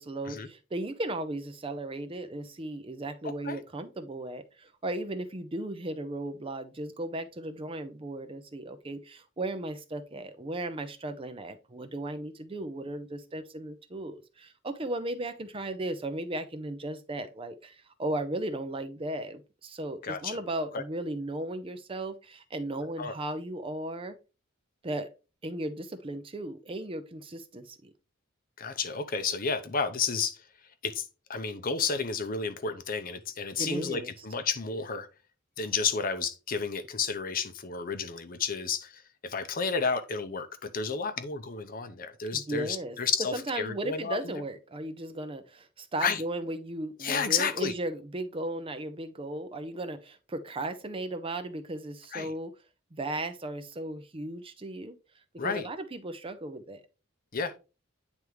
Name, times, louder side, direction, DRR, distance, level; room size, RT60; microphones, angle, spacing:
voice 1, 0.0-24.2 24.8-25.1 25.4-27.9 33.6-34.1 42.3-43.0 43.3-52.5 52.9-55.0 55.4-56.8, right 1 dB, 25° right, 0.5 m, -36 dB
voice 2, 20.0-20.4 20.7-20.8 23.0-23.1 28.6-30.4 30.8-31.0 31.3-35.1 35.6-44.4 46.0-46.2 47.0-47.7 52.1-52.3 55.4-55.6 57.3-57.6, left 5 dB, 45° left, 0.6 m, -31 dB
9.1 x 3.5 x 3.1 m
head